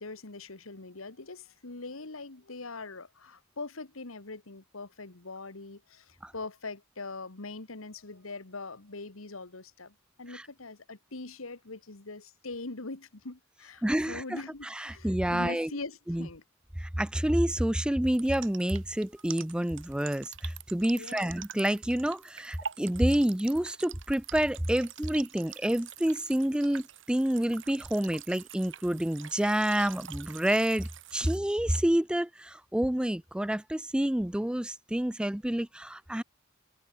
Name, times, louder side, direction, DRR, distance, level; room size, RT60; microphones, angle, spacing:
voice 1, 0.0-16.4 20.9-21.3, left 3 dB, 90° left, 1.9 m, -42 dB
voice 2, 13.8-14.2 14.8-15.7 16.1-16.3 16.8-36.2, right 1 dB, 5° right, 0.4 m, -28 dB
sound 1, 18.1-31.4, right 8 dB, 65° right, 2.4 m, -46 dB
head